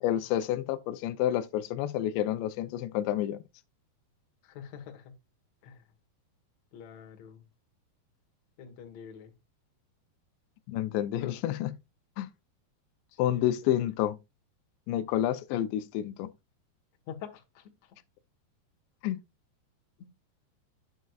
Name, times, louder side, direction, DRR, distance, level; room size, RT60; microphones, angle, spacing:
voice 1, 0.0-3.4 10.7-11.7 12.2-12.3 13.2-14.2 14.9-16.3 19.0-19.2, left 12 dB, 85° left, 2.8 m, -29 dB
voice 2, 4.4-5.1 5.6-5.9 6.7-7.5 8.6-9.3 11.2-11.4 13.1-13.9 17.1-18.0, left 8 dB, 60° left, 1.8 m, -47 dB
9.3 x 7.3 x 2.3 m
omnidirectional pair, 5.0 m